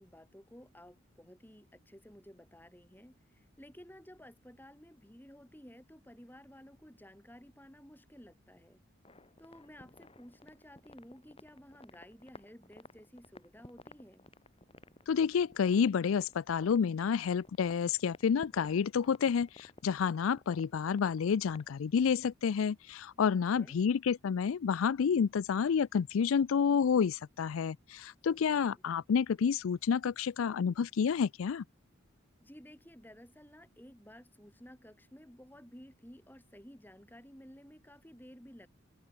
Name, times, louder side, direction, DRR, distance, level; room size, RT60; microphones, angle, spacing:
voice 1, 0.0-8.8 9.4-14.3 23.3-23.8 28.3-28.8 32.4-38.7, equal, 10° left, 3.9 m, -54 dB
sound 1, 9.0-21.8, left 2 dB, 25° left, 3.7 m, -55 dB
voice 2, 15.1-31.6, left 6 dB, 80° left, 0.4 m, -29 dB
head